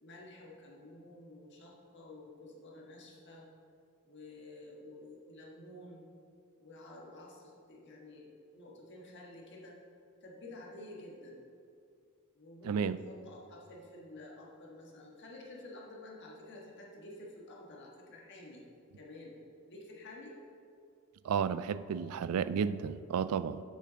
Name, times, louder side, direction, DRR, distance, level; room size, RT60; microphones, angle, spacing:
voice 1, 0.0-3.5 4.0-6.0 6.6-9.8 10.2-11.4 12.3-18.6 19.0-19.3 19.7-20.4, left 2 dB, 55° left, -2 dB, 1.6 m, -51 dB
voice 2, 12.6-13.0 21.2-23.6, right 7 dB, 90° right, 16 dB, 0.3 m, -32 dB
7.1 x 5.7 x 6.3 m, 2.4 s
head